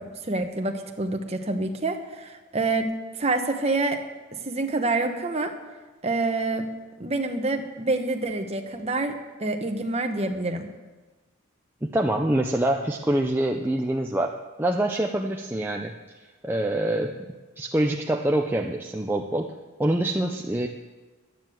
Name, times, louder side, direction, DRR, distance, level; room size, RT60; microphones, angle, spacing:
voice 1, 0.0-2.9 3.2-4.0 4.4-5.5 6.0-6.7 7.0-10.7, right 2 dB, 30° right, 5 dB, 1.1 m, -27 dB
voice 2, 11.8-15.9 16.4-17.2 17.6-20.7, right 1 dB, 10° right, 1 dB, 0.5 m, -25 dB
12.0 x 9.4 x 7.7 m, 1.2 s
head